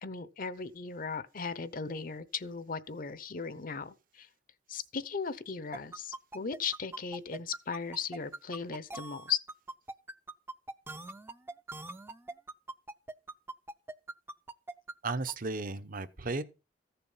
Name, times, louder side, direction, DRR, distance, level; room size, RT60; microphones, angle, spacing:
voice 1, 0.0-4.3 4.7-9.4, left 6 dB, 50° left, 0.8 m, -37 dB
sound 1, 5.7-15.3, right 2 dB, 15° right, 0.6 m, -42 dB
voice 2, 15.0-16.4, right 3 dB, 50° right, 0.9 m, -34 dB
15.0 x 6.8 x 5.6 m
head